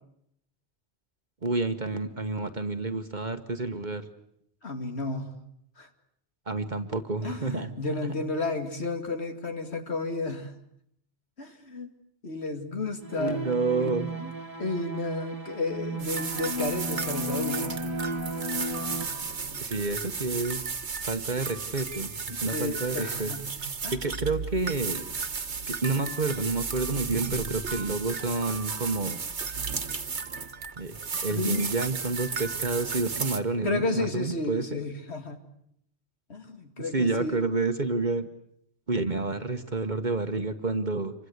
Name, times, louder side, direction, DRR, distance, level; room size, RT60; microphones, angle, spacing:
voice 1, 1.4-4.1 6.5-8.1 13.1-14.1 19.6-20.7 21.0-23.3 23.9-25.0 25.7-29.2 30.8-34.7 36.8-38.3 38.9-41.1, right 3 dB, 45° right, 8 dB, 1.4 m, -29 dB
voice 2, 4.6-5.3 5.8-5.9 7.2-10.5 11.4-11.9 12.2-13.4 13.8-14.3 14.6-17.8 19.5-19.7 22.3-23.4 23.8-24.0 31.3-31.6 33.6-35.4 36.3-37.4, left 3 dB, 70° left, 6 dB, 2.7 m, -32 dB
sound 1, 13.0-19.1, equal, 20° right, 2.3 m, -34 dB
sound 2, 16.0-33.4, right 5 dB, 80° right, 1.8 m, -34 dB
27.5 x 25.0 x 8.1 m, 0.73 s
omnidirectional pair, 1.1 m